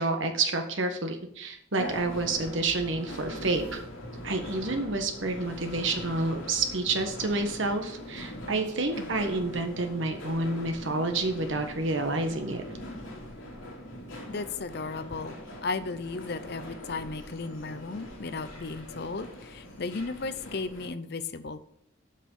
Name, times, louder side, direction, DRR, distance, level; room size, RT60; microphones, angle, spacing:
voice 1, 0.0-3.8 4.2-12.6, right 3 dB, 65° right, 5 dB, 1.3 m, -29 dB
sound 1, 1.8-20.9, equal, 80° left, 3.2 m, -42 dB
voice 2, 14.3-21.7, left 3 dB, 50° left, 12 dB, 0.6 m, -35 dB
7.5 x 6.3 x 5.5 m, 0.72 s
head